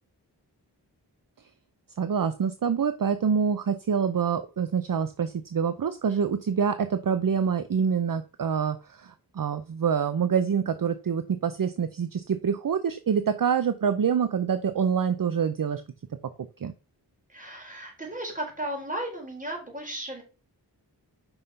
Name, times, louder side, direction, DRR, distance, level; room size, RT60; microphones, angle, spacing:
voice 1, 2.0-15.8 16.6-16.7, right 7 dB, 55° right, 11 dB, 0.6 m, -26 dB
voice 2, 17.3-20.2, right 1 dB, 20° right, 0 dB, 3.6 m, -35 dB
5.6 x 5.5 x 5.5 m, 0.32 s
wide cardioid pair, 60°, 41 cm